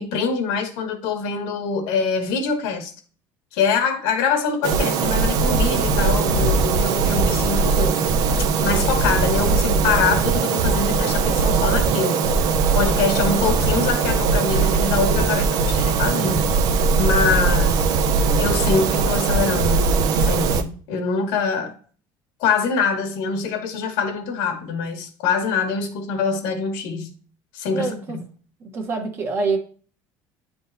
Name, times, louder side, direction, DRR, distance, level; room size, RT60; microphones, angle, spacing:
voice 1, 0.0-2.9 3.5-8.0 8.4-12.3 12.7-16.5 17.0-17.9 18.4-19.9 20.2-21.7 22.4-27.1 27.5-28.2, left 5 dB, 80° left, 1.4 m, -24 dB
sound 1, 4.6-20.6, right 5 dB, 50° right, 0.6 m, -20 dB
voice 2, 27.7-28.2 28.7-29.6, right 4 dB, 30° right, 1.1 m, -25 dB
10.0 x 3.7 x 2.6 m
cardioid pair, 165°, 8 cm